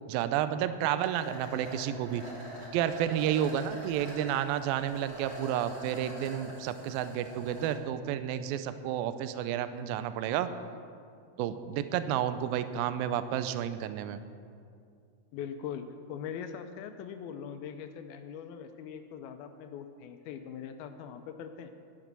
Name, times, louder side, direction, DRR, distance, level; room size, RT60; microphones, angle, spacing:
voice 1, 0.1-2.2 2.7-10.5 11.4-14.2, right 10 dB, 80° right, 12 dB, 2.3 m, -31 dB
sound 1, 1.1-7.7, right 1 dB, 25° right, 3.0 m, -44 dB
voice 2, 15.3-21.7, left 7 dB, 80° left, 7 dB, 2.5 m, -41 dB
11.5 x 11.0 x 6.7 m, 2.3 s
omnidirectional pair, 4.4 m